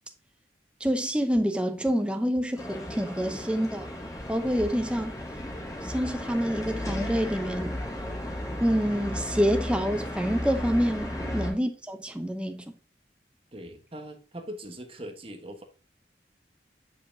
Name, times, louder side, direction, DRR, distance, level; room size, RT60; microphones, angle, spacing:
sound 1, 0.8-0.9 1.3-1.4 1.8-1.9 2.3-2.4 2.9-3.0 3.4-3.5 3.9-4.0 4.4-4.5 4.9-5.0 5.4-5.5 5.9-6.0 6.4-6.5 6.9-7.0 7.4-7.5 7.9-8.0 8.4-8.5, left 1 dB, 45° left, 3.1 m, -50 dB
voice 1, 0.8-3.9 4.3-5.1 5.9-7.8 8.6-12.6, equal, 5° right, 0.7 m, -27 dB
sound 2, 2.6-11.5, left 1 dB, 20° left, 1.7 m, -34 dB
voice 2, 11.2-11.5 13.5-15.6, equal, 30° right, 1.3 m, -41 dB
9.4 x 5.4 x 2.7 m
head